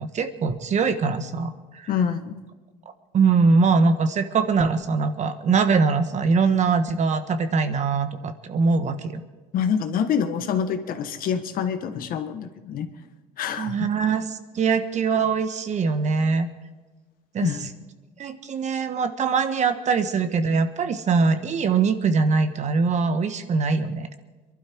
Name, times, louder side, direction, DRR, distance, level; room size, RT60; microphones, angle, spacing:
voice 1, 0.0-1.9 3.1-9.2 13.6-14.2 14.5-16.5 17.3-17.5 18.2-24.1, right 4 dB, 45° right, 10 dB, 1.4 m, -22 dB
voice 2, 1.9-2.4 9.5-12.9 13.4-13.8 17.4-17.7, left 7 dB, 60° left, 7 dB, 1.5 m, -26 dB
22.5 x 12.0 x 4.7 m, 1.2 s
supercardioid pair, 85°, 17 cm